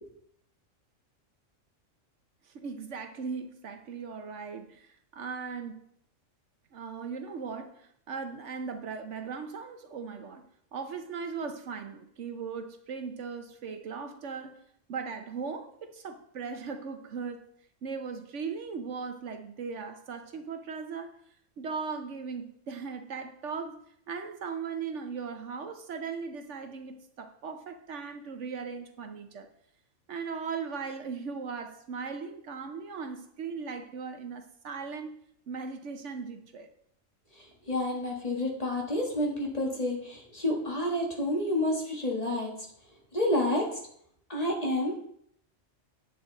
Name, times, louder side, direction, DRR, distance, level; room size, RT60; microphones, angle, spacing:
voice 1, 2.5-5.8 6.7-10.5 10.7-14.6 14.9-17.5 17.8-21.1 21.6-23.8 24.1-29.5 30.1-35.1 35.5-36.7, right 5 dB, 65° right, 7 dB, 1.1 m, -38 dB
voice 2, 37.4-42.5 43.1-43.8 44.3-45.1, left 1 dB, 30° left, -1 dB, 1.8 m, -29 dB
9.9 x 7.8 x 4.0 m, 0.69 s
omnidirectional pair, 1.3 m